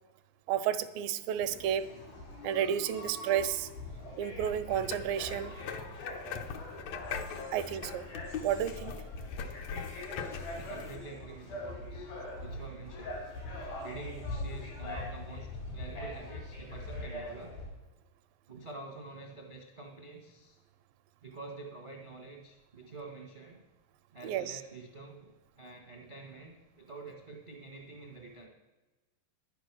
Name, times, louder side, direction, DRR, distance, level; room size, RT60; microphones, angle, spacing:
voice 1, 0.5-1.9 2.4-3.7 4.2-5.5 7.5-8.1 8.4-9.0 24.2-24.6, right 10 dB, 85° right, 12 dB, 2.4 m, -31 dB
sound 1, 1.4-17.7, left 1 dB, 90° left, 5.9 m, -42 dB
sound 2, 4.5-11.0, left 6 dB, 75° left, 1.6 m, -42 dB
voice 2, 10.1-12.1 12.4-13.2 13.8-17.5 18.5-20.6 21.2-23.6 24.1-28.5, right 3 dB, 55° right, 1 dB, 0.5 m, -47 dB
10.5 x 9.2 x 6.1 m, 1.1 s
omnidirectional pair, 4.0 m